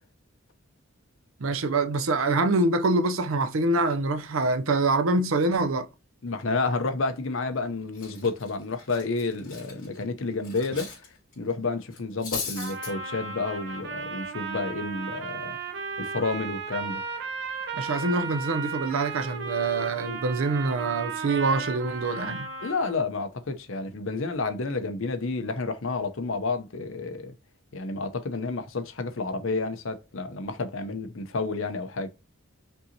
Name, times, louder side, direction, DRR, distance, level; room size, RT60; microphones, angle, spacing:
voice 1, 1.4-5.9 17.7-22.5, right 2 dB, 75° right, 0.6 m, -25 dB
voice 2, 6.2-10.9 11.4-15.6 16.0-17.0 22.6-27.3 27.7-32.1, left 3 dB, 65° left, 0.7 m, -30 dB
Cutlery silverware, 7.6-7.7 7.9-11.1 11.3-11.5 11.9-12.9, left 5 dB, 40° left, 2.3 m, -38 dB
Trumpet, 12.6-23.0, right 5 dB, 55° right, 1.0 m, -35 dB
5.4 x 2.8 x 2.8 m
head